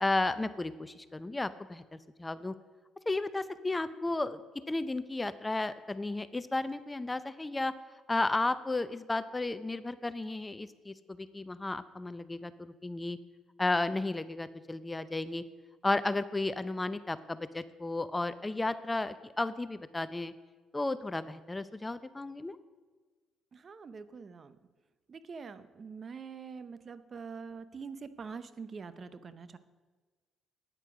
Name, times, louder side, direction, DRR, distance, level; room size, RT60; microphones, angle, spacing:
voice 1, 0.0-2.5 3.1-4.4 4.7-7.7 8.1-13.2 13.6-15.4 15.8-20.3 20.7-22.6, left 2 dB, 20° left, 14 dB, 0.6 m, -33 dB
voice 2, 23.5-24.6 25.1-29.6, right 5 dB, 45° right, 13 dB, 0.7 m, -44 dB
9.1 x 9.0 x 6.2 m, 1.3 s
hypercardioid pair, 55°, 0 cm